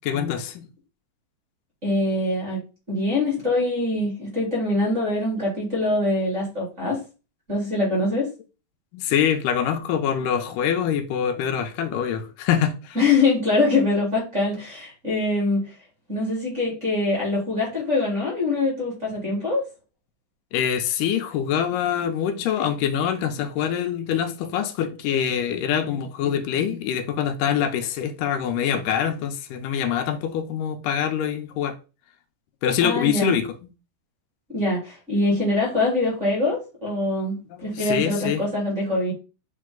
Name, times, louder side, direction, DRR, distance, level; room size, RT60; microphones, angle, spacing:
voice 1, 0.0-0.7 8.9-13.0 20.5-31.8 32.6-33.5 37.5-38.4, left 8 dB, 90° left, 2.3 m, -24 dB
voice 2, 1.8-2.6 2.9-7.0 7.5-8.3 13.0-15.7 16.1-19.6 32.8-33.3 34.5-39.1, left 2 dB, 25° right, 2.2 m, -23 dB
7.6 x 3.2 x 3.8 m
omnidirectional pair, 3.8 m